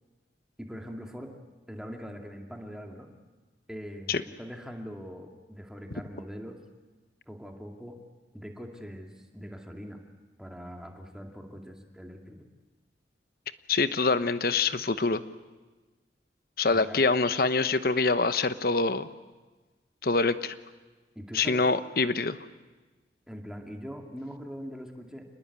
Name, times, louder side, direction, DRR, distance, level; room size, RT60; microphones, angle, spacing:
voice 1, 0.6-1.3 1.7-3.1 3.7-6.6 7.3-8.0 8.3-10.0 10.4-12.5 16.7-17.0 21.2-21.7 23.3-25.2, equal, 5° right, 2 dB, 2.4 m, -42 dB
voice 2, 13.7-15.2 16.6-19.1 20.0-20.5 21.3-22.4, left 3 dB, 55° left, 12 dB, 1.0 m, -25 dB
28.0 x 20.0 x 8.5 m, 1.3 s
head